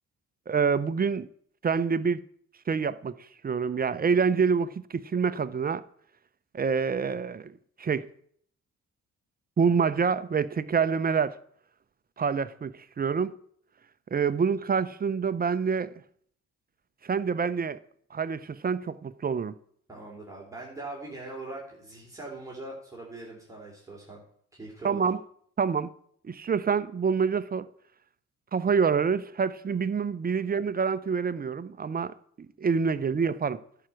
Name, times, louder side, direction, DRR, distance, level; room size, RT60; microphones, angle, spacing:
voice 1, 0.5-1.3 1.6-2.2 2.7-3.1 3.4-5.8 6.5-8.1 9.6-11.4 12.2-13.3 14.1-15.9 17.0-17.8 18.1-19.5 24.8-25.2 25.6-25.9 26.2-27.7 28.5-33.6, right 6 dB, 30° right, 0.7 m, -27 dB
voice 2, 19.9-24.2 24.6-25.0, right 2 dB, 10° right, 3.2 m, -41 dB
11.0 x 5.8 x 7.7 m
cardioid pair, 90°, 30 cm